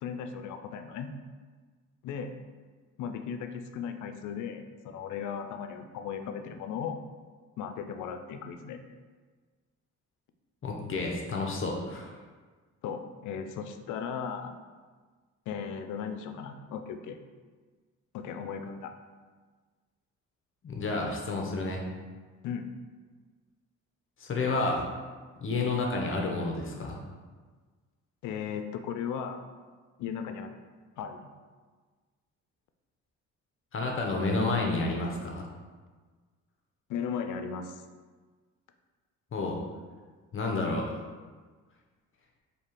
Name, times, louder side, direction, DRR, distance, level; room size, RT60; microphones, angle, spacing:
voice 1, 0.0-1.1 2.0-2.3 3.0-7.0 7.6-8.8 12.8-14.5 15.5-17.2 18.1-18.9 22.4-22.7 28.2-29.4 30.0-30.6 31.0-31.2 36.9-37.8, left 7 dB, 80° left, 8 dB, 0.5 m, -36 dB
voice 2, 10.6-12.1 20.6-21.8 24.2-24.9 25.4-27.0 33.7-35.5 39.3-39.6 40.3-41.0, left 3 dB, 45° left, 0 dB, 0.7 m, -30 dB
3.4 x 2.7 x 4.3 m, 1.4 s
cardioid pair, 90°, 30 cm